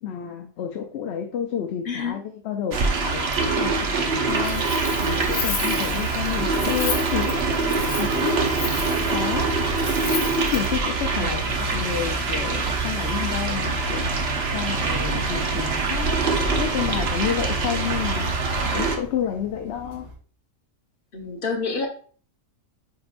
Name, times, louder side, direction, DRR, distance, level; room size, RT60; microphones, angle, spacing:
voice 1, 0.0-4.7 5.0-7.5 8.0-8.5 9.0-9.5 10.3-14.1 14.5-16.2 16.6-18.3 18.6-20.1, left 9 dB, 60° left, 4 dB, 0.8 m, -30 dB
voice 2, 1.8-2.2 6.5-7.0 11.1-11.4 21.1-21.9, left 4 dB, 40° left, 1 dB, 1.3 m, -29 dB
sound 1, 2.7-19.0, right 4 dB, 50° right, 1.1 m, -24 dB
Wind, 4.3-10.8, left 5 dB, 80° left, 1.4 m, -33 dB
sound 2, 5.5-20.2, right 1 dB, 85° right, 1.8 m, -36 dB
9.4 x 4.4 x 2.5 m, 0.43 s
omnidirectional pair, 1.4 m